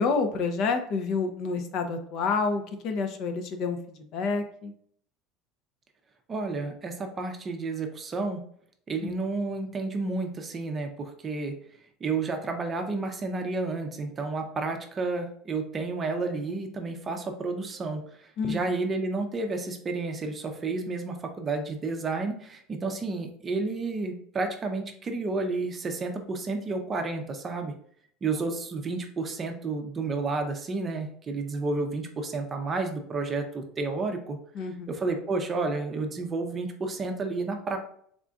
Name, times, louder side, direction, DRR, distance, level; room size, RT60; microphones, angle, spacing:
voice 1, 0.0-4.7 9.0-9.1 18.4-18.7 34.6-34.9, left 4 dB, 50° left, 6 dB, 0.5 m, -28 dB
voice 2, 6.3-8.4 8.9-11.5 12.0-27.7 28.2-34.4 34.9-37.8, right 3 dB, 25° right, 4 dB, 0.5 m, -31 dB
3.7 x 3.6 x 2.3 m, 0.63 s
cardioid pair, 150°, 0 cm